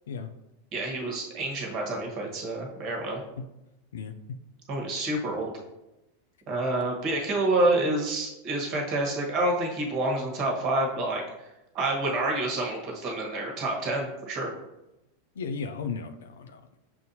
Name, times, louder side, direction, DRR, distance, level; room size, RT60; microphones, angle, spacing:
voice 1, 0.7-3.2 4.7-5.5 6.5-11.2 11.7-14.5, right 2 dB, 45° right, 0 dB, 1.3 m, -28 dB
voice 2, 3.9-4.4 15.4-16.7, left 5 dB, 75° left, 7 dB, 0.3 m, -35 dB
6.4 x 2.6 x 2.8 m, 0.94 s
hypercardioid pair, 95°, 0 cm